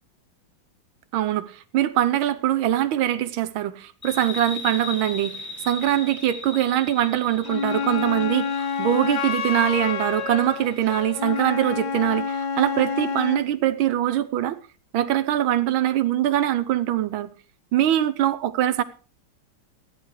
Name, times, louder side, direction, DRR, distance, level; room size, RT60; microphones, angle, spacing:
voice 1, 1.1-5.4 5.6-14.6 14.9-17.3 17.7-18.8, right 12 dB, 80° right, 1.6 m, -23 dB
sound 1, 4.0-11.2, left 3 dB, 10° left, 0.7 m, -38 dB
Wind instrument woodwind instrument, 7.4-13.5, left 6 dB, 60° left, 1.5 m, -28 dB
14.0 x 10.0 x 4.7 m
omnidirectional pair, 2.3 m